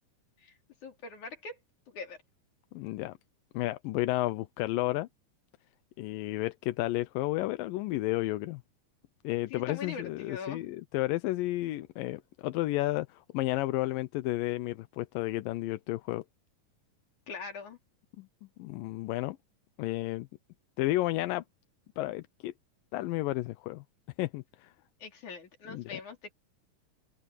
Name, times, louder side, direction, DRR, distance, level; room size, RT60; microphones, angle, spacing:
voice 1, 0.8-1.6 1.9-2.2 9.5-10.6 17.3-17.8 25.0-26.3, left 5 dB, 60° left, 4.9 m, -42 dB
voice 2, 2.7-3.1 3.5-5.1 6.0-8.6 9.2-16.2 18.2-18.3 18.6-19.4 19.8-20.3 20.8-21.4 22.0-22.5 22.9-23.8 24.2-24.7 25.7-26.0, left 17 dB, 85° left, 2.4 m, -32 dB
open air
omnidirectional pair, 3.9 m